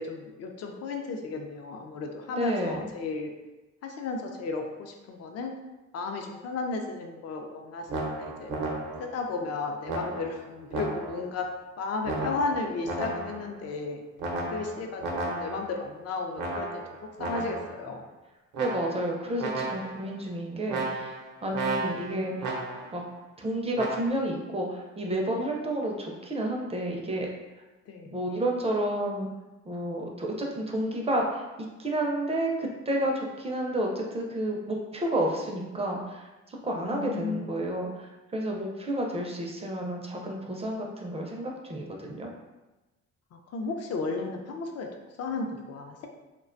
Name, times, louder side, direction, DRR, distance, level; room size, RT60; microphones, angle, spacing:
voice 1, 0.0-3.3 3.8-5.5 5.9-8.5 9.0-11.5 11.8-14.0 14.5-16.8 17.2-18.0 27.9-28.2 36.7-37.7 43.3-44.9 45.2-46.1, left 3 dB, 55° left, 4 dB, 0.4 m, -34 dB
voice 2, 2.4-2.9 18.6-21.1 21.4-22.3 22.9-23.0 23.4-27.3 28.1-29.3 29.6-31.4 31.8-42.3, right 1 dB, 20° right, 0 dB, 0.4 m, -30 dB
sound 1, 7.9-9.2 9.9-11.3 12.0-13.6 14.2-15.8 16.4-17.8 18.5-19.1 19.4-20.1 20.7-23.0 23.7-24.1, right 2 dB, 70° right, 0.6 m, -33 dB
2.4 x 2.2 x 2.4 m, 1.1 s
cardioid pair, 90°, 30 cm